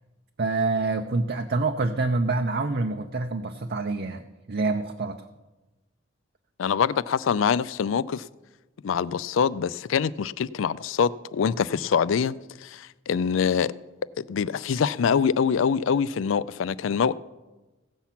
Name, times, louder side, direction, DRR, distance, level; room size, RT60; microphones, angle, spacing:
voice 1, 0.4-5.3, right 3 dB, 55° right, 0.6 m, -26 dB
voice 2, 6.6-8.2 8.8-12.3 12.6-13.7 14.2-17.1, left 6 dB, 75° left, 0.4 m, -24 dB
16.5 x 7.1 x 5.8 m
head